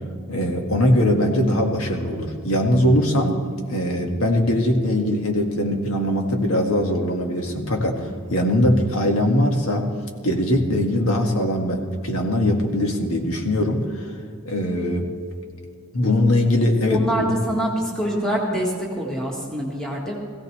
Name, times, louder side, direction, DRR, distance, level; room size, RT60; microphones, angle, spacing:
voice 1, 0.3-9.9 10.2-13.9 14.5-15.1 15.9-17.4, left 1 dB, 80° left, 2 dB, 1.8 m, -21 dB
voice 2, 16.9-20.2, equal, 5° left, -3 dB, 1.7 m, -25 dB
18.0 x 16.0 x 3.3 m, 2.2 s
head